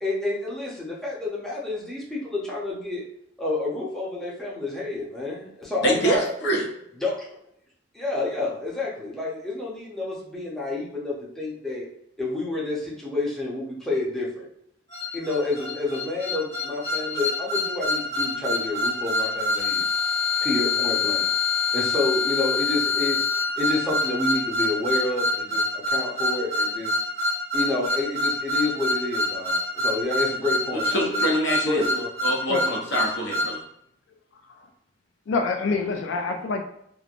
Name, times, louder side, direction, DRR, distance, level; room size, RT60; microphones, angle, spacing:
voice 1, 0.0-3.1 3.4-6.3 7.0-7.4 7.9-11.9 12.2-14.5 15.1-19.9 20.4-21.3 21.7-23.2 23.6-27.0 27.5-31.2 31.6-32.1, left 2 dB, 5° left, -6 dB, 0.7 m, -29 dB
voice 2, 5.8-6.6 30.8-33.6, right 1 dB, 65° left, -1 dB, 0.8 m, -25 dB
sound 1, 14.9-33.6, left 2 dB, 35° left, 1.4 m, -26 dB
voice 3, 35.3-36.6, left 4 dB, 90° left, 4 dB, 0.3 m, -26 dB
3.1 x 2.1 x 2.5 m, 0.73 s
head